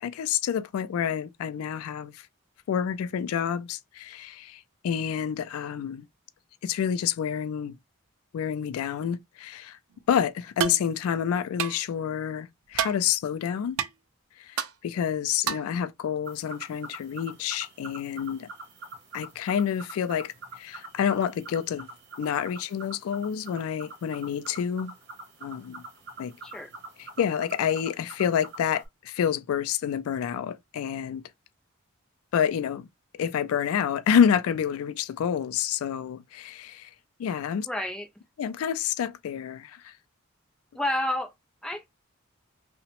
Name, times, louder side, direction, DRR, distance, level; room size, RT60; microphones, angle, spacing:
voice 1, 0.0-2.2 2.7-6.1 6.6-7.8 8.3-9.8 10.1-13.8 14.4-18.5 19.1-21.9 22.2-24.9 25.4-25.8 26.2-26.3 27.2-31.2 32.3-32.9 33.2-36.9 37.2-37.7 38.4-39.9, left 8 dB, 85° left, 0.3 m, -28 dB
sound 1, 10.6-10.8 11.6-11.8 12.7-13.0 13.8-13.9 14.6-14.7 15.5-15.7, right 8 dB, 80° right, 0.4 m, -28 dB
sound 2, 16.3-28.9, right 2 dB, 55° right, 0.8 m, -45 dB
voice 2, 37.7-38.1 40.7-41.3 41.6-41.9, left 1 dB, 5° left, 0.5 m, -29 dB
2.8 x 2.0 x 2.9 m
head